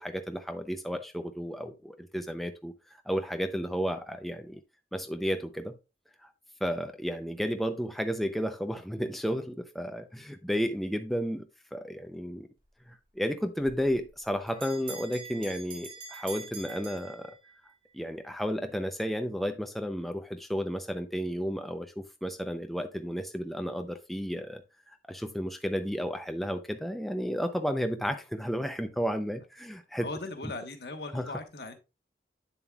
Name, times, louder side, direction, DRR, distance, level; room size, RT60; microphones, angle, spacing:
voice 1, 0.0-2.7 3.1-4.6 4.9-5.7 6.2-6.3 6.6-12.5 12.9-17.3 17.9-24.6 24.9-30.1 31.1-31.3, equal, ahead, 0.5 m, -32 dB
Bell, 13.7-17.7, right 4 dB, 30° right, 2.3 m, -44 dB
voice 2, 30.0-31.7, left 2 dB, 70° left, 1.3 m, -39 dB
8.7 x 7.1 x 2.3 m
head